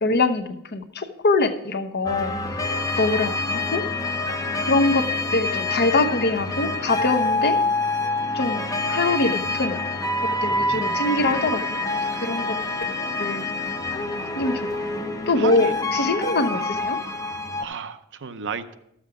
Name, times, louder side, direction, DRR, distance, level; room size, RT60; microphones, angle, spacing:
voice 1, 0.0-2.3 3.0-3.8 4.6-7.6 8.3-9.8 10.2-11.8 12.1-12.5 13.2-13.4 14.3-14.8 15.3-17.0, left 2 dB, 50° left, 8 dB, 0.9 m, -23 dB
sound 1, 2.1-17.6, left 2 dB, 15° left, 0.7 m, -26 dB
voice 2, 10.3-11.4 15.4-15.7 17.6-18.7, right 5 dB, 55° right, 11 dB, 0.7 m, -34 dB
13.0 x 7.4 x 4.8 m, 0.80 s
head